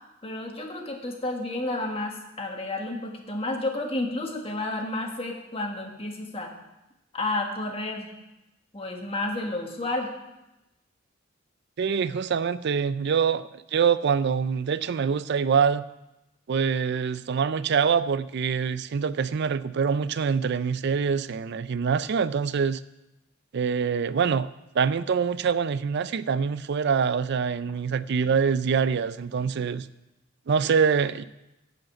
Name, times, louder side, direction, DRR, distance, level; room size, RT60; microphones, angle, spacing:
voice 1, 0.2-6.5 7.1-8.1 8.7-10.1, left 2 dB, 30° left, 2 dB, 1.5 m, -31 dB
voice 2, 11.8-15.8 16.5-22.8 23.5-24.5 24.7-29.9 30.5-31.2, right 6 dB, 60° right, 15 dB, 0.4 m, -25 dB
11.5 x 5.2 x 7.9 m, 0.96 s
head